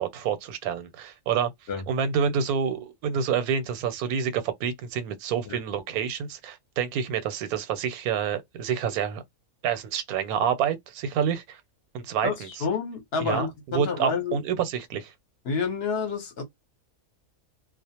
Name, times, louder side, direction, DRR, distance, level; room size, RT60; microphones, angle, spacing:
voice 1, 0.0-1.5 1.9-9.2 9.6-11.6 11.9-12.5 13.2-13.5 13.7-15.1, right 7 dB, 90° right, 1.1 m, -28 dB
voice 2, 12.2-14.4 15.4-16.4, left 5 dB, 55° left, 0.9 m, -29 dB
2.4 x 2.0 x 2.8 m
omnidirectional pair, 1.5 m